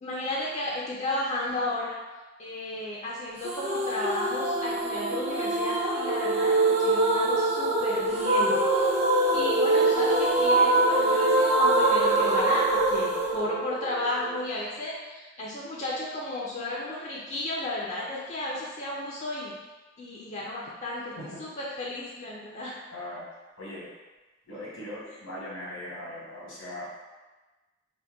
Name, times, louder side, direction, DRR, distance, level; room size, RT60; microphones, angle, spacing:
voice 1, 0.0-2.0 2.4-8.9 9.3-19.5 20.0-22.8 25.1-25.2, left 1 dB, 35° left, -4 dB, 0.4 m, -33 dB
sound 1, 3.4-14.4, right 2 dB, 35° right, 0.4 m, -24 dB
voice 2, 22.9-23.2 23.6-23.9 24.5-27.0, left 1 dB, 80° left, -6 dB, 1.1 m, -39 dB
2.7 x 2.1 x 3.3 m, 1.2 s
head